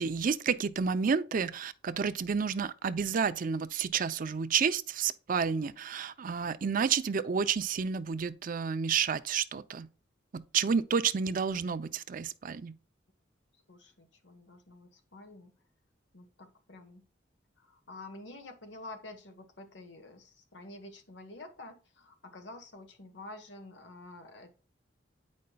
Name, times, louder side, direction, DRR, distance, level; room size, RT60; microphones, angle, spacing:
voice 1, 0.0-9.9 10.3-12.7, right 6 dB, 45° right, 0.4 m, -30 dB
voice 2, 13.5-15.5 16.1-17.1 17.6-24.5, left 2 dB, 65° left, 1.2 m, -49 dB
8.6 x 5.2 x 2.2 m
head